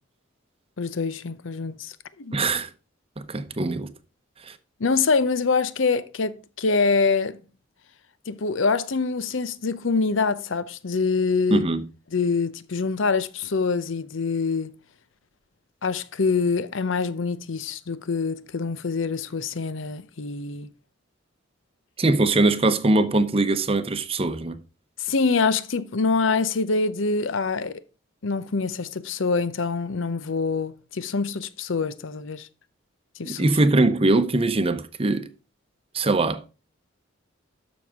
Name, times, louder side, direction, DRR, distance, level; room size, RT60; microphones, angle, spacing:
voice 1, 0.8-2.4 4.8-7.4 8.3-11.7 12.1-14.7 15.8-20.7 25.0-27.8 28.2-32.5 33.2-33.5, left 4 dB, 70° left, 0.7 m, -25 dB
voice 2, 2.3-2.7 3.2-3.9 4.4-4.5 11.5-11.9 22.0-24.6 33.2-35.3 35.9-36.5, right 2 dB, 30° right, 0.8 m, -22 dB
12.5 x 6.2 x 3.6 m
head